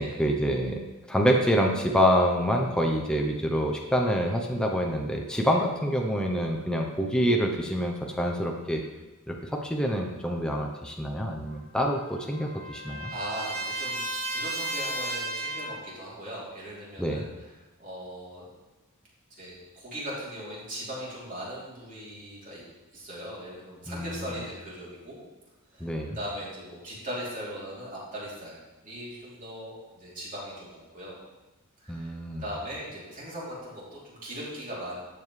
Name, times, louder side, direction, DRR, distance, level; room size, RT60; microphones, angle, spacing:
voice 1, 0.0-8.8 9.3-13.1 17.0-17.2 23.9-24.4 25.8-26.2 31.9-32.4, equal, 5° left, 1 dB, 0.7 m, -26 dB
Trumpet, 11.5-15.9, right 2 dB, 85° right, 1.8 m, -34 dB
voice 2, 13.1-17.5 17.8-18.4 19.3-22.6 22.9-25.2 25.7-25.9 26.1-28.6 28.8-31.2 31.8-32.1 32.4-35.0, equal, 40° right, -6 dB, 3.2 m, -39 dB
12.0 x 7.6 x 3.3 m, 1.1 s
head